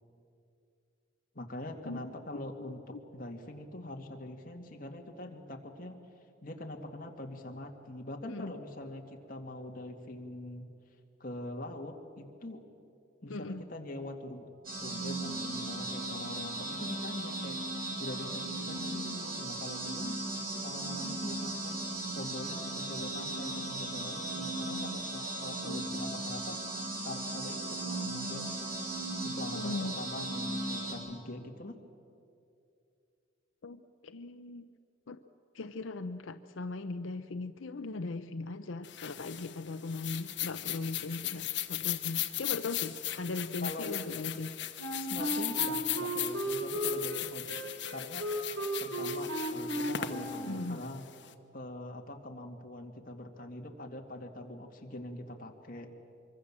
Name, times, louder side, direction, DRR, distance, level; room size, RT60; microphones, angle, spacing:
voice 1, 1.3-6.0 6.4-10.7 11.2-12.6 13.2-14.4 14.8-20.2 20.6-21.9 22.1-26.6 27.0-28.5 29.2-31.8 43.6-43.9 45.0-47.5 47.9-48.3 48.8-51.1 51.5-55.9, left 1 dB, 45° left, 2 dB, 2.3 m, -43 dB
voice 2, 1.8-2.2 8.3-8.5 13.3-13.6 25.6-25.9 29.5-30.0 33.6-34.7 35.1-35.2 35.5-44.6 50.5-50.8, left 3 dB, 90° left, 9 dB, 0.7 m, -39 dB
sound 1, 14.6-30.9, right 2 dB, 45° right, 4.8 m, -37 dB
sound 2, 38.8-51.3, left 13 dB, 65° left, 1.2 m, -37 dB
Wind instrument woodwind instrument, 44.8-50.7, right 1 dB, 80° right, 4.2 m, -35 dB
24.5 x 24.5 x 7.5 m, 2.5 s
head